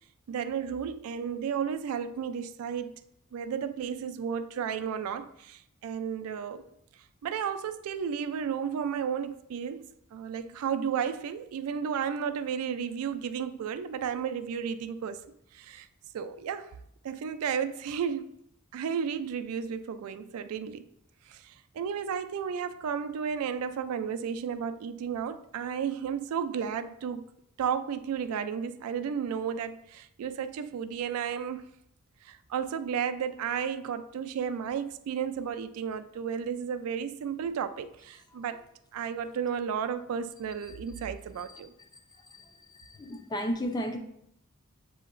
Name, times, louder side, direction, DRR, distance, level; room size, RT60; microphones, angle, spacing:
voice 1, 0.3-2.9 3.3-6.7 7.2-15.2 15.5-15.9 16.1-16.7 17.0-18.4 18.7-20.9 21.3-27.3 27.6-31.7 32.2-38.6 38.9-41.7, right 7 dB, 75° right, 11 dB, 0.3 m, -33 dB
voice 2, 42.3-44.0, equal, 20° left, 5 dB, 0.4 m, -34 dB
7.2 x 2.8 x 2.5 m, 0.74 s
head